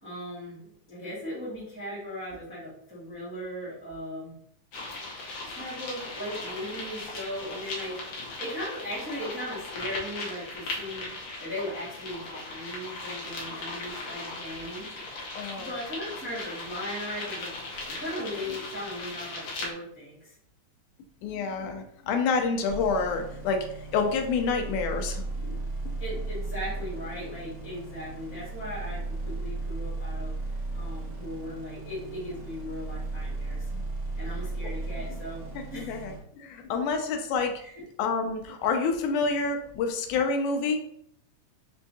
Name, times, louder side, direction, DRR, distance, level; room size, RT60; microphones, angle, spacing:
voice 1, 0.0-4.3 5.5-8.0 8.4-11.1 11.4-14.9 15.6-20.3 26.0-30.3 30.7-33.7 34.1-35.4 35.7-36.0 37.6-37.8, equal, 5° right, -9 dB, 1.0 m, -38 dB
sound 1, 4.7-19.7, left 2 dB, 65° left, 1.9 m, -38 dB
voice 2, 15.4-15.7 21.2-23.7 23.9-25.6 33.7-33.8 35.1-35.2 35.6-37.5 38.0-40.8, left 4 dB, 85° left, 5 dB, 2.1 m, -28 dB
sound 2, 22.7-36.2, right 2 dB, 80° right, 0.7 m, -35 dB
5.4 x 3.4 x 2.7 m, 0.69 s
omnidirectional pair, 3.5 m